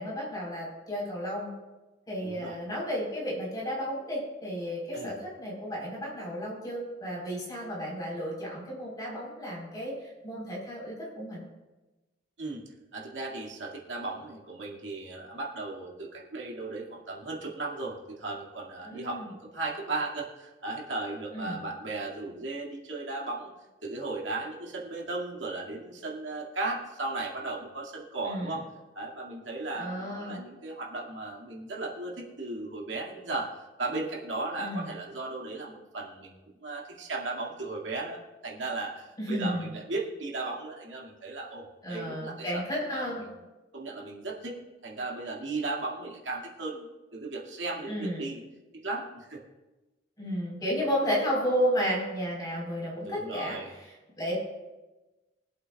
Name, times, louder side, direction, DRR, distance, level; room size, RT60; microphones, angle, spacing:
voice 1, 0.0-1.5 2.1-11.4 18.8-19.3 21.3-21.6 28.2-28.6 29.7-30.4 34.6-34.9 39.2-39.7 41.8-43.2 47.9-48.3 50.2-54.4, equal, 20° left, -4 dB, 4.3 m, -33 dB
voice 2, 2.2-2.6 4.9-5.1 12.4-12.6 12.9-23.5 23.8-28.6 28.9-33.5 33.8-36.3 36.6-42.6 42.9-43.4 43.7-44.6 44.8-48.4 48.8-49.4 53.0-53.7, right 2 dB, 75° right, -3 dB, 2.3 m, -36 dB
23.5 x 8.2 x 2.4 m, 1.1 s
head